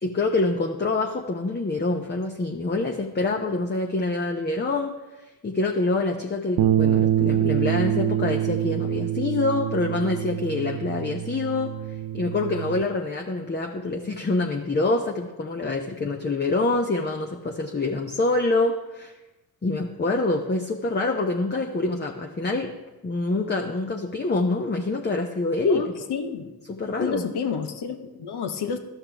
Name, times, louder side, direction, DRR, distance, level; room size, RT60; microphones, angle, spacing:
voice 1, 0.0-4.9 5.4-11.7 12.1-19.1 19.6-22.7 23.0-25.9 26.7-27.2, left 2 dB, 25° left, 2 dB, 0.8 m, -26 dB
sound 1, 6.6-12.8, right 11 dB, 50° right, 0.5 m, -25 dB
voice 2, 25.7-26.5 27.0-28.8, left 6 dB, 60° left, 6 dB, 1.1 m, -30 dB
13.0 x 5.7 x 3.4 m, 1.1 s
hypercardioid pair, 45°, 45 cm